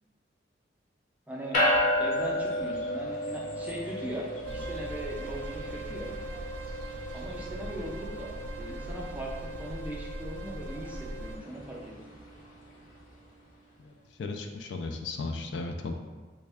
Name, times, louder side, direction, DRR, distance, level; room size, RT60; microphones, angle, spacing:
voice 1, 1.3-1.6 2.0-6.1 7.1-11.9, right 1 dB, 10° right, -3 dB, 0.4 m, -39 dB
sound 1, 1.5-13.1, left 1 dB, 45° left, 0.7 m, -34 dB
sound 2, 4.4-11.4, right 1 dB, 80° right, 0.3 m, -39 dB
voice 2, 14.2-15.9, left 3 dB, 70° left, 4 dB, 0.3 m, -35 dB
3.4 x 2.1 x 3.4 m, 1.3 s
head